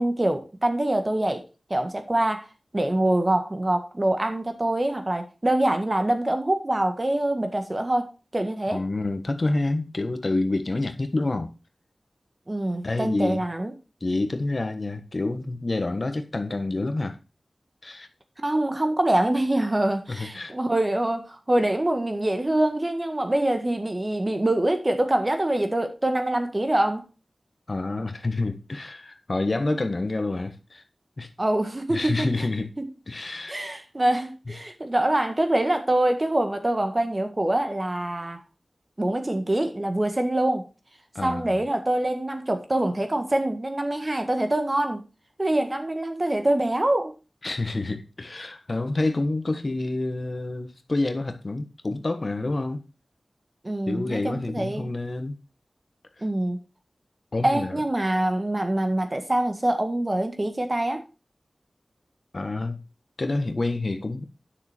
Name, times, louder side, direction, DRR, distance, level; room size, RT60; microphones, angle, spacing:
voice 1, 0.0-1.4 1.7-2.5 2.7-8.8 12.5-13.7 18.4-27.0 31.4-32.5 32.8-32.9 33.5-38.4 39.0-40.7 41.2-45.0 45.4-47.1 53.6-54.9 56.2-56.6 57.4-61.0, right 1 dB, 30° right, 1.8 m, -25 dB
voice 2, 8.7-11.5 12.8-13.4 14.0-17.2 17.8-18.1 20.1-20.5 27.7-30.8 31.2-31.3 31.9-32.7 33.1-33.6 41.1-41.6 47.4-52.8 53.9-55.4 56.2-56.3 57.3-57.8 62.3-62.8 63.2-64.2, left 2 dB, 50° left, 1.3 m, -28 dB
9.8 x 6.6 x 4.5 m
wide cardioid pair, 55°, 0 cm